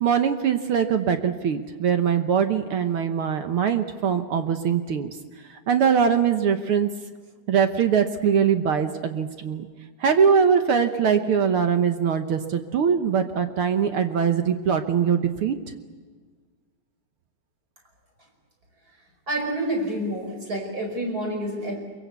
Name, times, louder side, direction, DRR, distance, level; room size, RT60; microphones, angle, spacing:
voice 1, 0.0-5.2 5.5-6.9 7.5-9.7 10.0-15.6, right 7 dB, 60° right, 8 dB, 1.4 m, -22 dB
voice 2, 19.3-21.8, right 1 dB, 25° right, 3 dB, 5.3 m, -28 dB
23.0 x 23.0 x 8.3 m, 1.5 s
omnidirectional pair, 3.6 m